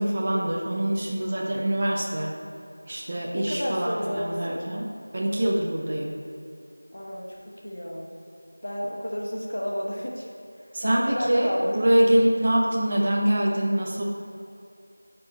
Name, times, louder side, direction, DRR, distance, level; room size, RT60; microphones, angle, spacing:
voice 1, 0.0-2.3 2.9-4.9 5.1-6.1 10.7-14.0, right 1 dB, 25° right, -2 dB, 0.6 m, -24 dB
voice 2, 3.3-4.6 6.9-8.1 8.6-10.3 10.8-11.8 12.9-13.0, equal, 50° left, -2 dB, 1.3 m, -31 dB
11.5 x 4.5 x 4.2 m, 2.5 s
figure-of-eight pair, 175°, 0 cm